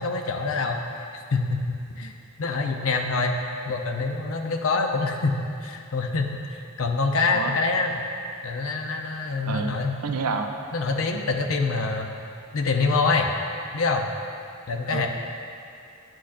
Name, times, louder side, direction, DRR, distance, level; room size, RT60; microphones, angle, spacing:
voice 1, 0.0-2.1 2.4-3.4 3.6-8.0 8.4-10.0 10.7-12.1 12.5-13.3 13.7-14.0 14.7-15.1, left 3 dB, 65° left, 3 dB, 0.6 m, -25 dB
voice 2, 9.4-10.5 14.9-15.1, right 4 dB, 90° right, 5 dB, 0.6 m, -29 dB
9.9 x 6.2 x 2.5 m, 2.5 s
head